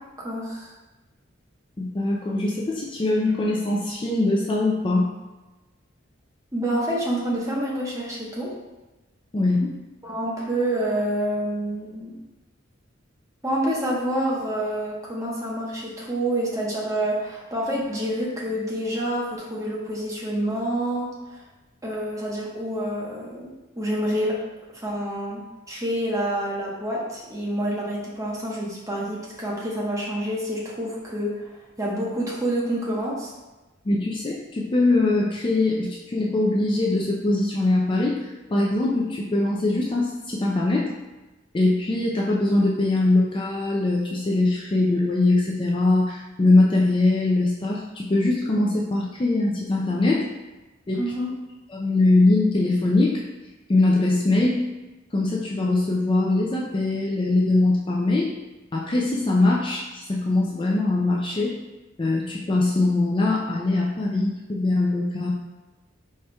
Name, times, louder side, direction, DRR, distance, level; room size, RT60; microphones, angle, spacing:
voice 1, 0.0-0.7 6.5-8.5 10.0-12.2 13.4-21.4 21.8-24.4 24.7-31.5 31.8-33.3 51.0-51.3, right 1 dB, 15° right, -5 dB, 0.9 m, -27 dB
voice 2, 1.8-5.1 9.3-9.7 33.9-40.9 41.5-50.3 50.9-51.1 51.7-53.2 53.7-54.6 55.1-58.3 58.7-61.6 62.0-65.3, left 2 dB, 25° left, -3 dB, 0.4 m, -22 dB
4.9 x 4.2 x 2.2 m, 1.1 s
head